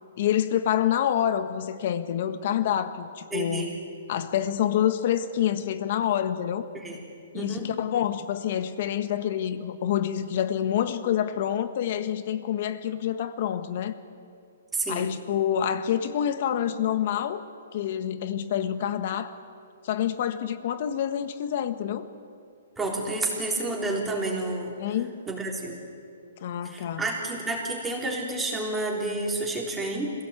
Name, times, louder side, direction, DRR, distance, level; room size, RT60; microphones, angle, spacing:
voice 1, 0.2-3.7 4.1-6.7 7.3-14.0 14.9-17.4 17.7-19.4 19.8-22.1 24.8-25.2 26.4-27.0, left 10 dB, 45° left, 11 dB, 1.4 m, -27 dB
voice 2, 3.3-3.8 6.7-7.0 7.3-7.7 14.7-15.1 22.8-24.7 25.3-25.8 26.6-30.1, right 2 dB, 10° right, -2 dB, 3.6 m, -30 dB
26.0 x 17.0 x 8.3 m, 2.4 s
hypercardioid pair, 160°, 0 cm